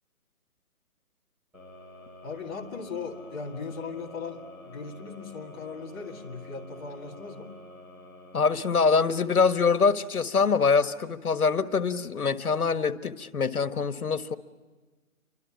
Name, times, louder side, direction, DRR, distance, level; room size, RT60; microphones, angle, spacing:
sound 1, 1.5-10.5, left 1 dB, 5° right, 7.0 m, -49 dB
voice 1, 2.2-7.6, left 5 dB, 15° left, -3 dB, 2.0 m, -38 dB
voice 2, 8.3-14.4, left 5 dB, 85° left, 11 dB, 1.6 m, -24 dB
29.5 x 25.0 x 7.2 m, 1.3 s
hypercardioid pair, 170°, 43 cm